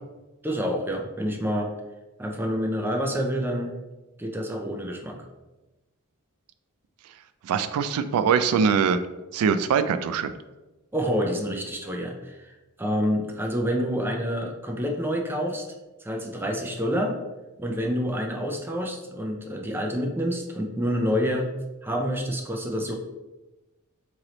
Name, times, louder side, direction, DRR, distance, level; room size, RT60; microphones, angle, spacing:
voice 1, 0.4-1.7 2.2-3.7 4.2-5.2 10.9-15.6 16.0-17.2 17.6-21.5 21.8-22.9, equal, 10° right, 2 dB, 0.4 m, -28 dB
voice 2, 7.4-9.0 9.3-10.3, right 6 dB, 85° right, 15 dB, 0.3 m, -22 dB
3.1 x 3.0 x 3.8 m, 1.1 s
head